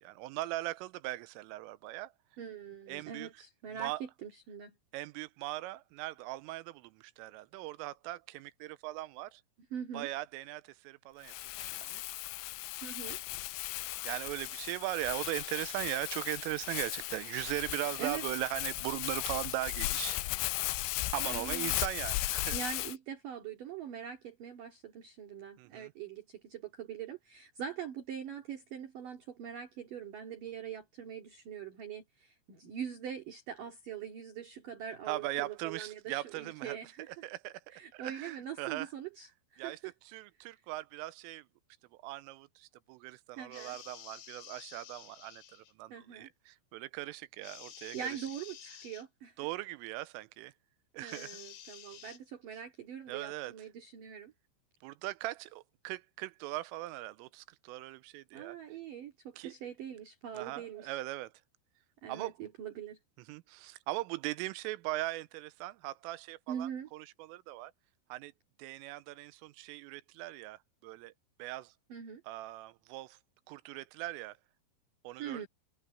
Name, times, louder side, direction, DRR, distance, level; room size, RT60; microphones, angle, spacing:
voice 1, 0.0-2.1 2.9-3.3 3.8-4.0 4.9-9.4 9.9-12.0 14.0-20.2 21.1-22.6 25.6-25.9 35.1-36.8 37.1-38.9 39.6-39.8 40.1-41.5 42.0-48.0 49.4-50.5 50.9-51.4 53.1-53.5 54.8-58.6 59.4-59.5 60.3-61.3 62.1-62.3 63.3-67.7 68.1-68.3 68.6-71.1 71.4-71.7 72.3-73.2 73.5-74.4 75.0-75.5, right 18 dB, 85° right, 3.3 m, -39 dB
voice 2, 2.4-4.8 9.7-10.1 12.8-13.2 18.0-18.4 21.3-21.8 22.5-37.3 37.7-39.9 43.3-43.8 45.9-46.3 47.9-49.4 51.0-54.3 58.3-61.0 62.0-63.0 66.5-66.9 71.9-72.2 75.2-75.5, right 8 dB, 50° right, 3.6 m, -43 dB
Crumpling crinkling, 11.3-23.0, left 19 dB, 85° left, 2.6 m, -36 dB
sound 1, 43.5-45.7 47.4-49.1 51.1-52.2, left 10 dB, 65° left, 4.0 m, -51 dB
omnidirectional pair, 5.8 m